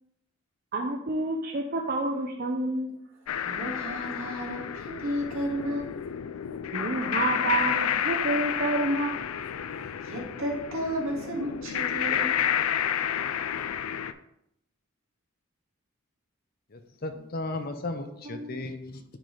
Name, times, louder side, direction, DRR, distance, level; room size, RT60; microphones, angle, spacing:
voice 1, 0.7-3.0 6.7-9.2 18.3-18.6, right 2 dB, 45° right, 1 dB, 0.6 m, -29 dB
sound 1, 3.3-14.1, left 9 dB, 85° left, 0.4 m, -30 dB
voice 2, 3.4-6.0 9.8-12.4, equal, 75° right, -2 dB, 2.0 m, -33 dB
voice 3, 16.7-19.0, left 2 dB, 45° left, 7 dB, 0.7 m, -35 dB
10.5 x 4.0 x 3.3 m, 0.77 s
head